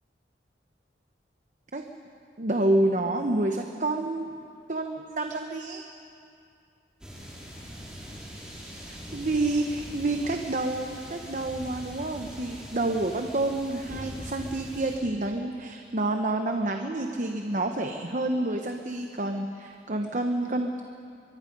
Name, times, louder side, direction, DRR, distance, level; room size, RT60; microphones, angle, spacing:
voice 1, 2.4-4.4 4.7-5.9 8.9-20.9, right 2 dB, 45° right, 4 dB, 0.9 m, -28 dB
sound 1, 7.0-15.0, equal, 5° right, 4.1 m, -42 dB
23.0 x 22.5 x 5.3 m, 2.5 s
head